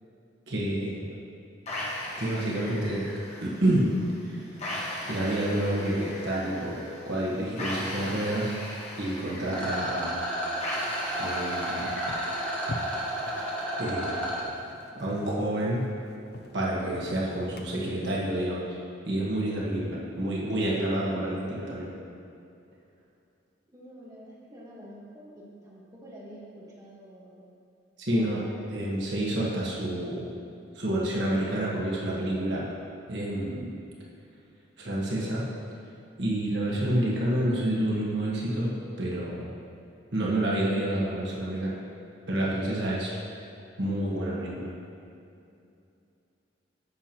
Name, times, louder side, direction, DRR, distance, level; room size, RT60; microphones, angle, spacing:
voice 1, 0.5-1.2 2.2-3.9 4.2-4.4 5.1-8.5 9.0-10.2 11.2-11.9 13.8-14.2 14.9-15.9 16.5-18.8 19.0-21.9 28.0-28.4 28.7-30.3 30.7-32.8 33.1-33.7 34.8-35.4 36.2-38.7 39.0-39.5 40.1-41.8 42.3-43.2 43.8-44.7, right 1 dB, 65° right, -5 dB, 1.4 m, -29 dB
sound 1, 1.7-13.6, left 1 dB, 35° left, 1.5 m, -39 dB
Rattle, 9.5-14.4, right 1 dB, 5° left, 1.5 m, -32 dB
sound 2, 10.9-18.2, left 2 dB, 55° left, 0.5 m, -45 dB
voice 2, 23.7-27.4 28.1-28.6, equal, 20° right, -7 dB, 1.4 m, -47 dB
10.5 x 7.3 x 3.0 m, 2.6 s
head